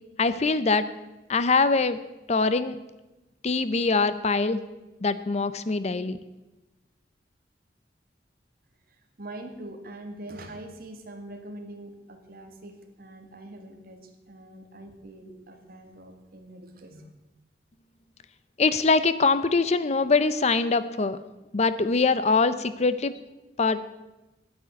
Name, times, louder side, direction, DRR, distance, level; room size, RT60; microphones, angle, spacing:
voice 1, 0.2-0.8 1.3-2.0 2.3-2.8 3.4-4.6 5.0-6.2 18.6-21.2 21.5-23.1 23.6-23.8, left 4 dB, 40° left, 13 dB, 0.6 m, -23 dB
voice 2, 9.2-17.1, right 1 dB, 55° right, 4 dB, 1.9 m, -43 dB
9.3 x 9.0 x 9.2 m, 1.1 s
head